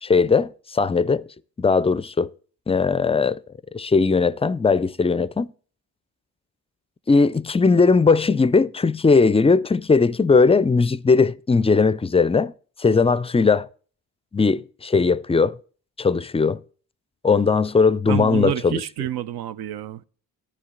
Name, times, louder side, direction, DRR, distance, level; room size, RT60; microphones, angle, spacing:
voice 1, 0.0-1.2 1.6-2.3 2.7-3.4 3.7-5.5 7.1-12.5 12.8-13.7 14.3-15.6 16.0-16.6 17.2-18.8, left 4 dB, 15° left, 0.4 m, -19 dB
voice 2, 18.1-20.1, right 13 dB, 75° right, 0.6 m, -28 dB
10.0 x 9.9 x 3.7 m
supercardioid pair, 60°, 38 cm